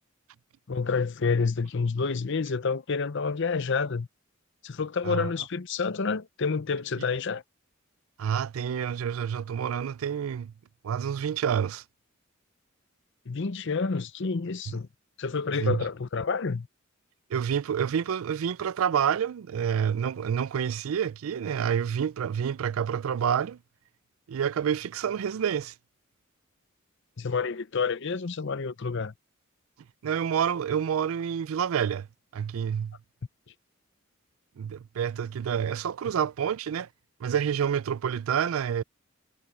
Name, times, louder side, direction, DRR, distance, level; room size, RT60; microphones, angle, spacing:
voice 1, 0.7-4.1 4.6-7.4 13.3-14.9 15.2-16.7 27.2-29.1, left 4 dB, 60° left, 0.7 m, -29 dB
voice 2, 8.2-10.5 10.8-11.8 15.6-15.8 17.3-23.6 24.3-25.7 30.0-32.1 32.3-33.0 34.6-36.9 37.2-38.8, right 8 dB, 85° right, 0.4 m, -28 dB
head